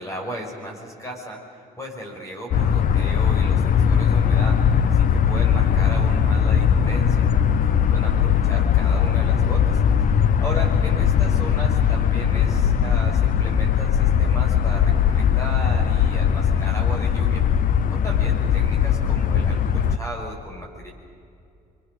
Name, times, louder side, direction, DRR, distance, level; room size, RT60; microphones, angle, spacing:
voice 1, 0.0-1.4 1.8-7.3 7.6-10.1 10.4-17.4 17.9-20.9, equal, 20° left, 0 dB, 6.1 m, -35 dB
sound 1, 2.5-20.0, left 8 dB, 55° left, 0.9 m, -19 dB
27.0 x 24.5 x 6.8 m, 2.4 s
cardioid pair, 110°, 17 cm